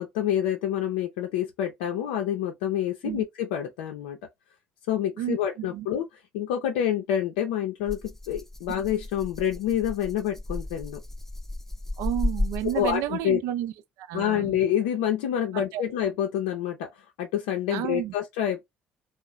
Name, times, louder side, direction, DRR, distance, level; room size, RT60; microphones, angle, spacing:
voice 1, 0.0-4.2 4.9-6.1 6.3-11.0 12.7-13.4 14.1-18.6, left 10 dB, 75° left, 0.5 m, -27 dB
voice 2, 5.2-5.9 12.0-13.7 14.0-14.6 15.5-15.8 17.7-18.1, right 12 dB, 70° right, 0.4 m, -31 dB
Rattle (instrument), 7.9-13.2, left 1 dB, 5° left, 0.6 m, -34 dB
3.0 x 2.0 x 3.8 m
hypercardioid pair, 55°, 5 cm